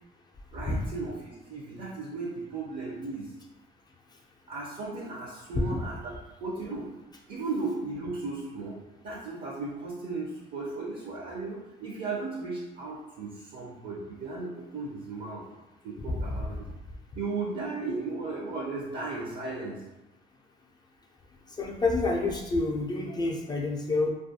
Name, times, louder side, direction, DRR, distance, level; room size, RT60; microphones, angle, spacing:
voice 1, 0.5-3.3 4.5-6.1 6.4-6.9 7.3-8.8 9.0-15.4 15.8-16.7 17.2-19.8, right 3 dB, 60° right, -4 dB, 0.5 m, -35 dB
voice 2, 21.6-24.1, left 3 dB, 25° left, -1 dB, 0.4 m, -28 dB
2.3 x 2.3 x 2.6 m, 1.0 s
cardioid pair, 110°, 17 cm